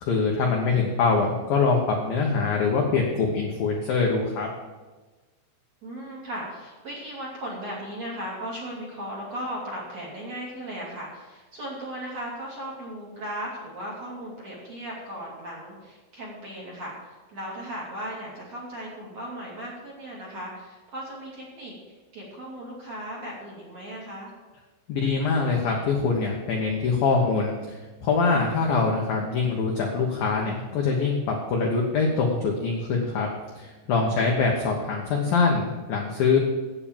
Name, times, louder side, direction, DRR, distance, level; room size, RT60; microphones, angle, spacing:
voice 1, 0.0-4.5 24.9-27.5 28.0-33.3 33.6-36.4, left 4 dB, 70° left, 0 dB, 2.2 m, -24 dB
voice 2, 5.8-21.7 22.1-24.3 29.2-29.3 34.1-34.5, right 1 dB, 40° right, -5 dB, 2.9 m, -37 dB
9.7 x 8.6 x 7.2 m, 1.2 s
omnidirectional pair, 5.8 m